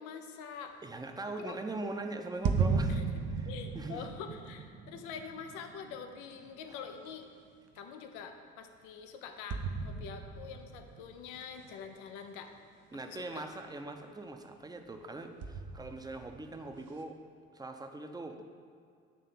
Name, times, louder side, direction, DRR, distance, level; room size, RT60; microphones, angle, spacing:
voice 1, 0.0-0.7 1.4-1.6 2.9-3.0 3.5-7.3 7.7-12.5 12.9-13.5, left 6 dB, 85° left, 6 dB, 0.5 m, -45 dB
voice 2, 0.8-3.0 3.3-4.1 12.9-17.2 17.5-18.4, right 2 dB, 15° right, 5 dB, 0.6 m, -41 dB
sound 1, 2.4-7.2 7.8-7.9 9.5-11.7 12.4-12.5 15.4-16.8, right 5 dB, 60° right, 0.7 m, -35 dB
7.6 x 3.3 x 5.4 m, 2.1 s
hypercardioid pair, 55°, 29 cm